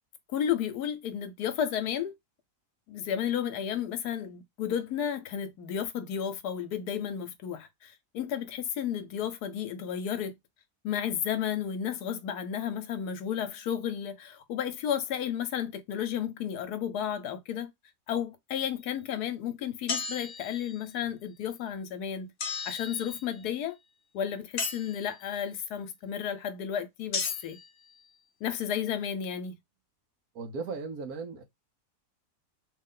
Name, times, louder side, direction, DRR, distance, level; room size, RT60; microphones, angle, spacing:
voice 1, 0.3-2.1 2.9-10.3 10.8-17.7 18.1-22.3 22.6-23.8 24.1-27.6 28.4-29.5, left 9 dB, 80° left, 1.2 m, -32 dB
sound 1, 19.9-20.9 22.4-23.5 24.6-25.3 27.1-27.7, left 4 dB, 50° left, 0.9 m, -36 dB
voice 2, 30.3-31.4, right 4 dB, 70° right, 1.4 m, -36 dB
3.3 x 2.5 x 3.7 m
omnidirectional pair, 1.7 m